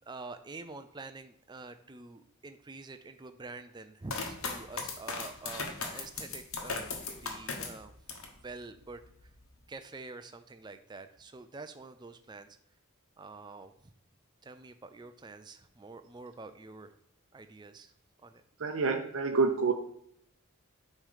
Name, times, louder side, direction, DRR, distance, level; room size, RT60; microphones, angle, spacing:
voice 1, 0.1-7.9 8.4-9.0 9.7-12.5 13.2-13.7 14.4-16.9 17.3-17.9 18.2-18.4, right 3 dB, 20° right, 9 dB, 0.4 m, -47 dB
sound 1, 4.1-8.4 8.8-9.5, left 4 dB, 80° left, 1.2 m, -38 dB
voice 2, 18.6-19.7, right 4 dB, 65° right, 4 dB, 0.6 m, -27 dB
9.1 x 3.1 x 5.0 m, 0.71 s
head